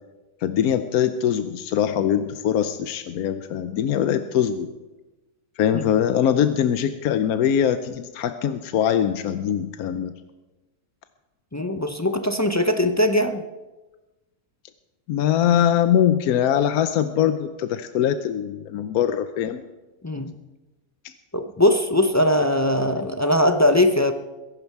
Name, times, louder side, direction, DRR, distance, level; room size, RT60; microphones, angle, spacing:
voice 1, 0.4-4.7 5.6-10.1 15.1-19.6 21.0-21.1, left 9 dB, 80° left, 10 dB, 1.2 m, -22 dB
voice 2, 11.5-13.4 20.0-20.3 21.3-24.1, left 1 dB, 25° left, 7 dB, 0.3 m, -20 dB
21.5 x 11.0 x 4.6 m, 1.1 s
omnidirectional pair, 1.5 m